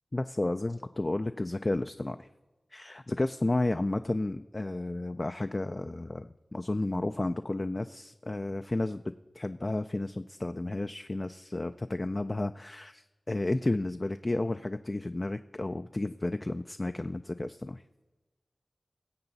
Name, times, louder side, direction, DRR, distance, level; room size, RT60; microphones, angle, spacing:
voice 1, 0.1-2.3 2.7-9.0 9.3-17.8, left 2 dB, 35° left, 9 dB, 0.3 m, -32 dB
19.5 x 7.9 x 4.0 m, 1.2 s
wide cardioid pair, 85°, 0 cm